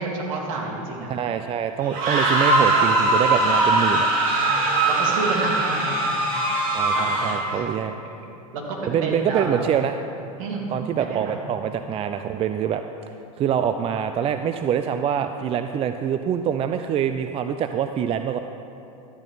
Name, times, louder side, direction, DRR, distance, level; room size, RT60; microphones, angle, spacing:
voice 1, 0.0-1.1 4.3-6.2 6.9-7.7 8.0-8.1 8.5-8.6 9.0-9.7 10.4-11.4, right 3 dB, 65° right, -1 dB, 2.8 m, -30 dB
voice 2, 1.1-4.1 6.7-7.9 8.9-10.0 10.7-12.8 13.4-18.4, right 8 dB, 30° right, 8 dB, 0.5 m, -25 dB
sound 1, 1.8-7.6, right 2 dB, 50° right, 2.8 m, -21 dB
13.5 x 13.0 x 4.1 m, 2.7 s
hypercardioid pair, 95°, 19 cm